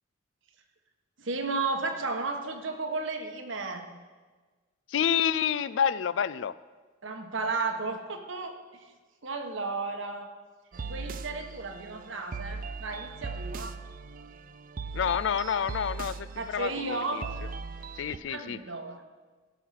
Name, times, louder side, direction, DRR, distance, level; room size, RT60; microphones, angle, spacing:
voice 1, 1.2-3.9 7.0-8.8 9.2-10.3 10.8-13.8 16.4-17.2 18.3-19.0, right 3 dB, 80° right, 5 dB, 1.3 m, -33 dB
voice 2, 4.9-6.5 14.9-17.2 18.0-18.6, left 8 dB, 70° left, 17 dB, 0.4 m, -28 dB
sound 1, 10.7-18.2, right 4 dB, 45° right, 0.4 m, -39 dB
16.5 x 6.4 x 5.8 m, 1.4 s
head